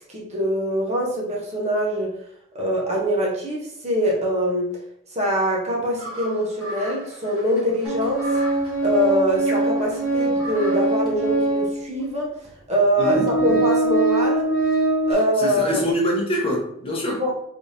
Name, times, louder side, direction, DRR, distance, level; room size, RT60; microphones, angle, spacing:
voice 1, 0.1-2.1 2.5-4.7 5.1-8.3 8.8-12.3 12.7-14.5 15.1-15.9 17.2-17.3, equal, 30° right, -3 dB, 0.9 m, -23 dB
sound 1, 6.0-11.0, right 1 dB, 85° right, 1.4 m, -37 dB
Organ, 7.8-11.8 12.4-12.5 13.0-15.1, right 2 dB, ahead, 1.0 m, -22 dB
voice 2, 13.0-13.6 15.4-17.2, equal, 25° left, -3 dB, 0.9 m, -25 dB
3.4 x 3.3 x 2.7 m, 0.72 s
head